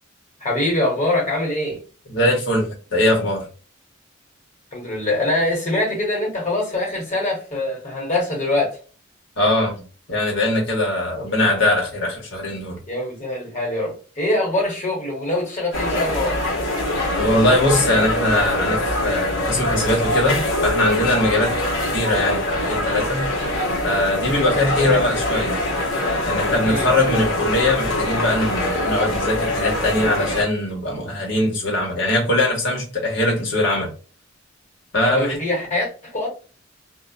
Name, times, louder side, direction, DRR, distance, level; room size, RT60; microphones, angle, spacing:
voice 1, 0.4-1.8 4.7-8.8 11.1-11.2 12.9-16.4 24.3-24.5 24.8-25.0 26.6-26.9 30.8-31.1 35.1-36.3, left 1 dB, 35° left, 1.3 m, -23 dB
voice 2, 2.1-3.5 9.4-9.8 10.1-12.8 17.2-21.5 21.9-23.3 23.8-25.6 26.2-33.9 34.9-35.4, left 1 dB, 60° left, 1.2 m, -21 dB
sound 1, 15.7-30.4, left 1 dB, 85° left, 1.0 m, -23 dB
2.4 x 2.1 x 2.4 m
head